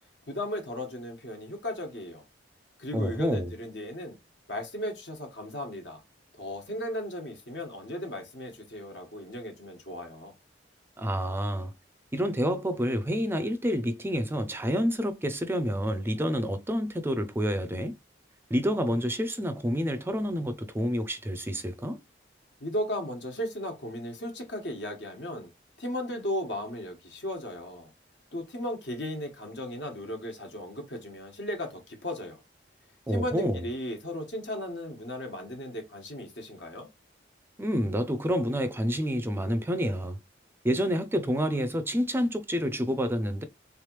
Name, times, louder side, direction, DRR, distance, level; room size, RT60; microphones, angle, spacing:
voice 1, 0.3-2.2 2.8-4.2 4.5-6.0 6.3-10.3 22.6-25.5 25.8-27.9 28.3-32.4 33.1-36.9, left 1 dB, 70° left, 1.4 m, -36 dB
voice 2, 2.9-3.5 11.0-11.7 12.1-17.9 18.5-22.0 33.1-33.6 37.6-40.2 40.6-43.4, equal, 15° right, 0.4 m, -28 dB
3.5 x 3.3 x 3.1 m
head